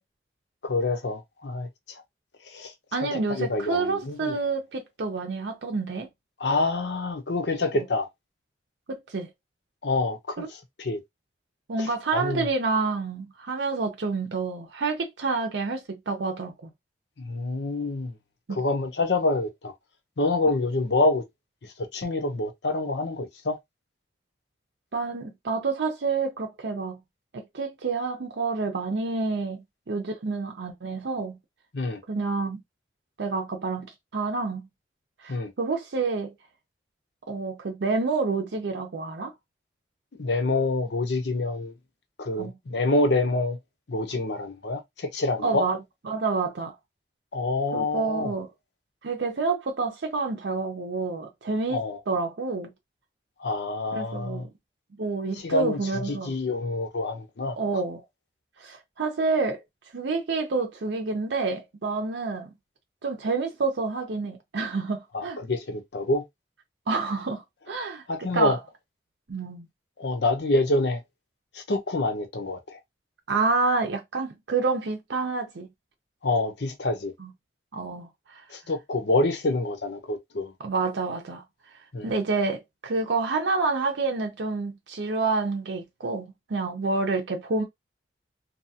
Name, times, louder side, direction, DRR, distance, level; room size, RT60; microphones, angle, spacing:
voice 1, 0.6-1.7 2.5-2.7 3.0-4.4 6.4-8.1 9.8-10.5 10.8-11.0 11.8-12.5 17.2-18.1 18.5-19.7 20.2-21.2 21.9-23.6 31.7-32.0 35.3-35.5 40.2-41.7 42.2-43.6 43.9-45.7 47.3-48.3 51.7-52.0 53.4-54.4 55.3-57.6 65.1-66.2 68.1-68.6 70.0-71.0 71.5-72.8 76.2-77.1 78.5-80.5 81.9-82.1, left 2 dB, 70° left, 0.7 m, -27 dB
voice 2, 2.9-6.1 7.7-7.8 8.9-9.3 10.4-10.5 11.7-16.7 18.5-18.6 24.9-27.0 27.3-31.4 32.1-32.6 33.2-34.7 35.2-36.3 37.3-39.3 42.4-42.5 45.4-45.8 46.1-46.8 47.7-48.5 49.0-52.7 53.9-54.5 55.0-56.4 57.6-58.0 58.6-59.6 59.9-62.5 63.0-65.4 66.9-68.6 69.3-69.7 73.3-75.7 77.2-77.3 77.7-78.4 80.6-81.4 82.0-87.6, right 4 dB, 75° right, 0.6 m, -28 dB
2.7 x 2.3 x 2.7 m
head